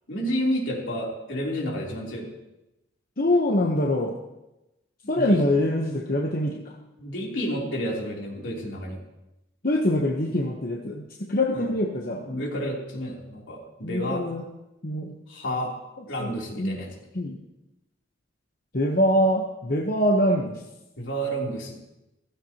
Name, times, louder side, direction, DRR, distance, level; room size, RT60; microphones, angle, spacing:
voice 1, 0.1-2.3 5.0-5.4 7.0-9.0 11.5-11.7 12.2-14.3 15.3-15.7 16.1-16.9 21.0-21.8, equal, 70° left, -3 dB, 3.5 m, -30 dB
voice 2, 3.2-4.1 5.1-6.7 9.6-12.2 13.8-14.4 14.8-15.1 16.2-16.3 16.6-16.8 17.1-17.4 18.7-20.6, left 1 dB, 45° left, 0 dB, 1.1 m, -24 dB
16.0 x 15.5 x 3.0 m, 0.95 s
head